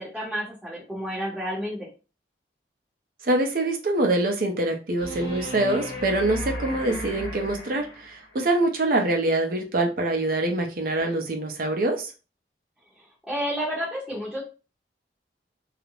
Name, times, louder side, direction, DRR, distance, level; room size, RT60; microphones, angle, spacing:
voice 1, 0.0-1.9 13.3-14.4, equal, ahead, -8 dB, 0.7 m, -30 dB
voice 2, 3.2-12.1, right 2 dB, 50° right, 4 dB, 0.5 m, -24 dB
sound 1, 5.0-8.3 11.0-11.1, equal, 70° left, 1.0 m, -35 dB
2.4 x 2.0 x 3.0 m, 0.32 s
head